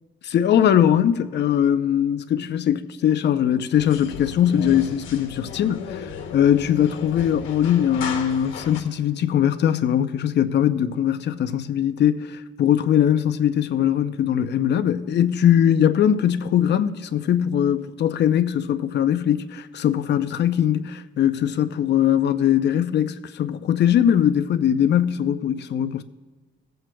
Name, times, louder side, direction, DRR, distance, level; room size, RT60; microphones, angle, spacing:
voice 1, 0.3-26.0, left 10 dB, 60° left, 0.6 m, -21 dB
sound 1, 3.8-8.8, left 7 dB, 80° left, 1.6 m, -35 dB
18.5 x 7.9 x 2.3 m
cardioid pair, 90°, 20 cm